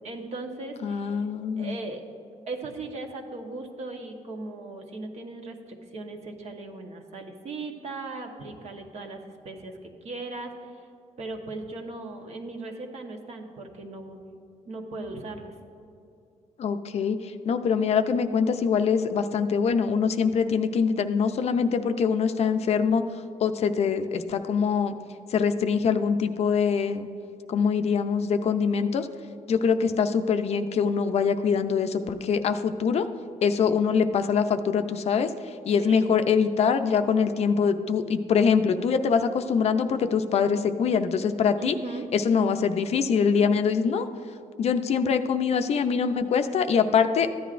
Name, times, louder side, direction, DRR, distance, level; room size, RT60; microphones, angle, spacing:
voice 1, 0.0-1.3 1.5-2.0 2.5-10.9 11.2-14.2 14.7-15.6 35.8-36.1 41.6-42.1, right 2 dB, 55° right, 3 dB, 1.1 m, -38 dB
voice 2, 0.8-1.7 16.6-23.0 23.4-24.9 25.3-27.1 27.5-29.1 29.5-33.1 33.4-35.3 35.7-41.7 42.1-44.1 44.6-47.3, left 6 dB, 55° left, 9 dB, 0.5 m, -24 dB
14.0 x 10.0 x 2.5 m, 2.6 s
cardioid pair, 140°, 13 cm